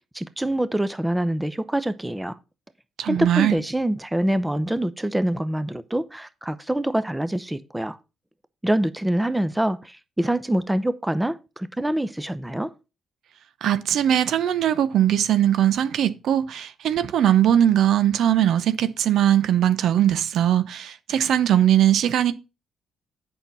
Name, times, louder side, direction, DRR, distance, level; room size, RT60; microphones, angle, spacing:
voice 1, 0.0-2.4 3.0-8.0 8.6-12.7, right 1 dB, 10° right, 0.7 m, -25 dB
voice 2, 3.0-3.6 13.6-22.3, right 11 dB, 70° right, 0.8 m, -20 dB
8.1 x 5.8 x 5.4 m
cardioid pair, 90°, 0 cm